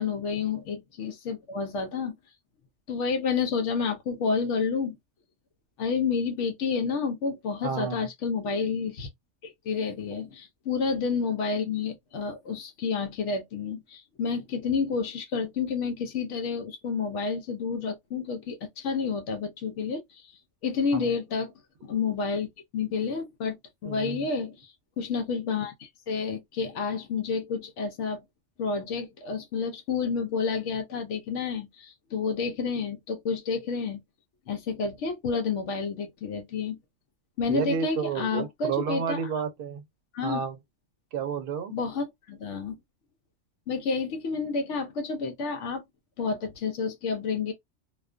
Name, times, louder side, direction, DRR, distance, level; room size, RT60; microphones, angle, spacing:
voice 1, 0.0-2.2 2.9-5.0 5.8-9.1 9.4-20.3 20.6-21.5 21.8-22.5 22.7-23.6 23.8-28.2 28.6-34.0 34.5-36.8 37.4-39.2 40.1-40.4 41.7-42.8 43.7-45.8 46.2-47.5, left 5 dB, 80° left, 0.9 m, -30 dB
voice 2, 7.6-8.1 20.9-21.1 23.8-24.3 37.5-39.8 40.2-40.6 41.1-41.7, right 7 dB, 60° right, 0.7 m, -31 dB
2.4 x 2.2 x 2.4 m
omnidirectional pair, 1.2 m